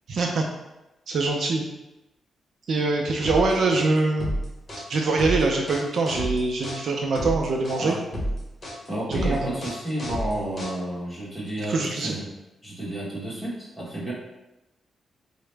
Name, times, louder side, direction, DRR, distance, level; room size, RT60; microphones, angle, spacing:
voice 1, 0.1-0.4 1.1-1.6 2.7-4.3 4.9-8.0 9.1-9.6 11.7-12.2, right 3 dB, 60° right, 1 dB, 0.4 m, -24 dB
sound 1, 3.2-11.1, equal, 25° left, 1.0 m, -31 dB
voice 2, 8.9-12.3 12.6-14.1, right 1 dB, 5° left, -7 dB, 1.2 m, -31 dB
4.6 x 2.1 x 3.3 m, 0.97 s
wide cardioid pair, 145°, 0 cm